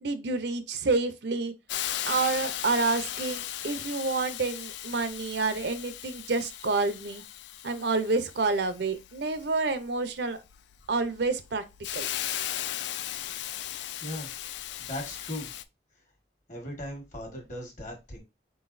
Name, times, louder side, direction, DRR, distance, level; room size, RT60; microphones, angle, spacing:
voice 1, 0.0-1.5 2.1-7.2 7.6-10.4 10.9-11.6 11.9-12.1, right 3 dB, 65° right, 0.6 m, -28 dB
Hiss, 1.7-15.6, left 12 dB, 70° left, 0.3 m, -37 dB
voice 2, 14.8-15.5 16.5-18.2, left 1 dB, 40° left, 1.4 m, -38 dB
4.5 x 3.9 x 2.5 m
head